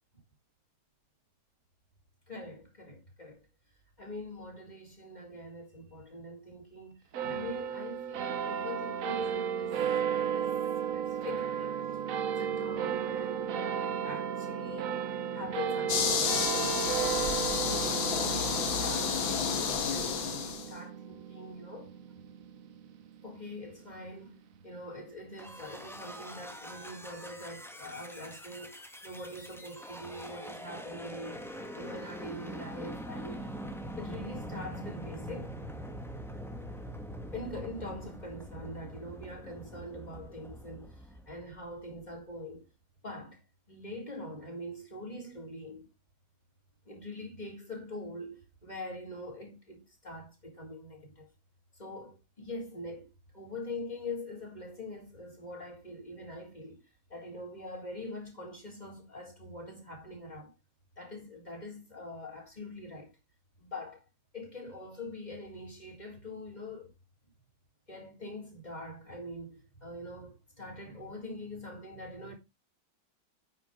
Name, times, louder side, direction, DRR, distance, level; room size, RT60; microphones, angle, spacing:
voice 1, 2.3-3.5 4.0-9.8 10.1-10.6 10.9-11.8 12.3-14.9 15.3-17.3 17.6-19.2 19.9-21.9 23.2-33.6 34.0-35.6 37.3-42.7 43.0-45.9 46.9-51.3 51.7-56.8 57.1-60.5 61.0-63.1 63.6-64.0 64.3-66.9 67.9-72.3, left 1 dB, 20° left, 4.1 m, -43 dB
sound 1, 7.1-23.9, right 8 dB, 55° right, 1.1 m, -34 dB
sound 2, 15.9-20.7, left 6 dB, 85° left, 2.2 m, -30 dB
sound 3, 25.4-42.0, equal, ahead, 1.4 m, -43 dB
9.2 x 8.2 x 3.6 m
omnidirectional pair, 2.1 m